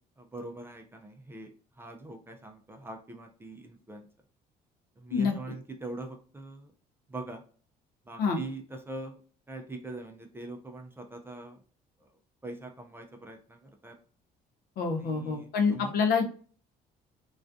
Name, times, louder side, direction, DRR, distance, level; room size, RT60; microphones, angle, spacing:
voice 1, 0.2-4.1 5.0-6.7 7.1-7.4 8.0-9.2 9.5-11.6 12.0-12.1 12.4-14.0 15.0-15.9, right 2 dB, 15° right, 3 dB, 0.4 m, -43 dB
voice 2, 14.8-16.2, left 5 dB, 65° left, 4 dB, 0.6 m, -26 dB
2.3 x 2.2 x 2.5 m, 0.41 s
cardioid pair, 110°, 17 cm